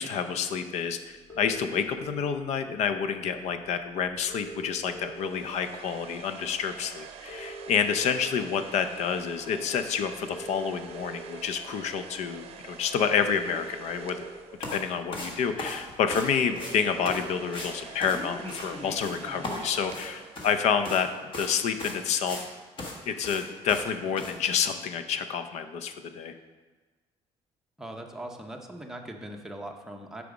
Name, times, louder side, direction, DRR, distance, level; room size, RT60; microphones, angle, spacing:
voice 1, 0.0-14.2 14.7-22.5 23.1-26.4, left 7 dB, 65° left, 9 dB, 0.6 m, -29 dB
sound 1, 1.3-2.3 3.5-3.6 3.8-3.9 4.1-5.6 6.1-6.3 7.1-8.3 9.0-9.2 10.1-11.3 12.5-12.6 13.1-14.3 15.0-15.1 15.4-15.5 15.7-15.8 16.0-17.3 17.6-19.8, right 1 dB, 20° left, 1.2 m, -42 dB
sound 2, 5.0-15.1 16.2-20.9, right 7 dB, 55° right, 0.6 m, -47 dB
sound 3, 14.6-14.8 15.1-16.3 16.5-16.7 17.1-17.2 17.5-17.7 18.0-18.7 19.0-19.2 19.4-20.6 20.8-21.0 21.3-21.5 21.8-22.5 22.8-22.9 23.2-23.4 23.7-23.8 24.2-24.3, left 2 dB, 45° left, 1.3 m, -37 dB
voice 2, 27.8-30.2, right 1 dB, 5° right, 2 dB, 0.7 m, -40 dB
6.8 x 4.9 x 5.1 m, 1.4 s
cardioid pair, 140°, 12 cm